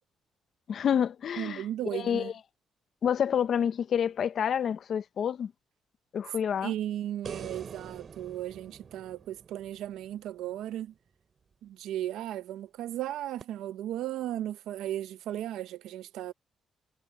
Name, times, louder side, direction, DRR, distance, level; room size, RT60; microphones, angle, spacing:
voice 1, 0.7-1.6 1.9-2.3 3.0-5.5 6.1-6.7, left 8 dB, 60° left, 1.1 m, -28 dB
voice 2, 1.4-2.3 6.6-10.9 11.6-16.3, right 12 dB, 85° right, 1.1 m, -35 dB
sound 1, 7.2-10.6 13.4-13.5, right 6 dB, 45° right, 3.4 m, -45 dB
cardioid pair, 90°, 0 cm